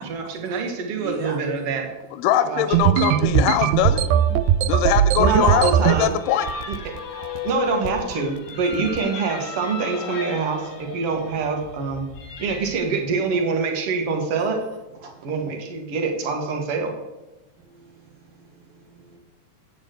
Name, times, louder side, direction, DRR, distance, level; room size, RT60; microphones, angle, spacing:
voice 1, 0.0-1.9 2.5-2.6 5.2-6.2 6.7-6.9 7.4-12.1 12.4-14.6 15.2-16.9, right 4 dB, 50° right, 3 dB, 2.0 m, -25 dB
voice 2, 1.0-1.4 3.0-3.6 15.0-15.3 17.6-19.2, right 6 dB, 70° right, 0 dB, 3.0 m, -38 dB
voice 3, 2.2-4.0 4.7-6.5, left 11 dB, 80° left, 11 dB, 2.1 m, -22 dB
sound 1, 2.7-6.0 6.5-7.0 7.2-7.5 7.8-8.1 8.7-9.0, right 10 dB, 90° right, 1.7 m, -19 dB
sound 2, 3.8-12.7, left 6 dB, 55° left, 1.2 m, -35 dB
8.2 x 6.8 x 7.8 m, 1.1 s
omnidirectional pair, 4.0 m